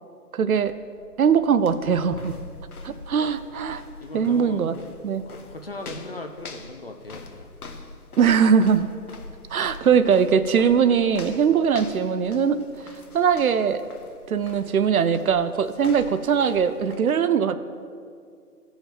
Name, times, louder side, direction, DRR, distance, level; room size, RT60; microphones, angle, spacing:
voice 1, 0.3-0.7 1.2-2.3 2.8-3.8 4.1-4.7 5.0-5.2 8.2-8.9 9.5-12.6 13.1-13.8 14.3-17.6, right 7 dB, 65° right, 12 dB, 0.5 m, -21 dB
sound 1, 0.6-17.0, left 3 dB, 65° left, 1.1 m, -44 dB
voice 2, 3.7-4.6 5.3-7.5, left 2 dB, 40° left, 4 dB, 0.5 m, -38 dB
16.5 x 5.7 x 2.8 m, 2.2 s
figure-of-eight pair, 155°, 48 cm